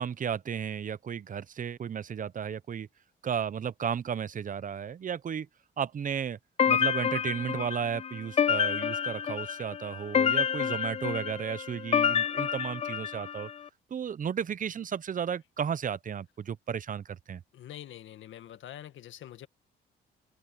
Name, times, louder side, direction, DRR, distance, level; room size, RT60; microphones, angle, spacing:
voice 1, 0.0-2.9 3.2-5.5 5.8-6.4 6.7-13.5 13.9-17.4, right 8 dB, 40° right, 0.9 m, -34 dB
sound 1, 6.6-13.5, left 8 dB, 30° left, 0.4 m, -28 dB
voice 2, 17.5-19.5, left 11 dB, 75° left, 1.8 m, -45 dB
cardioid pair, 90°, 20 cm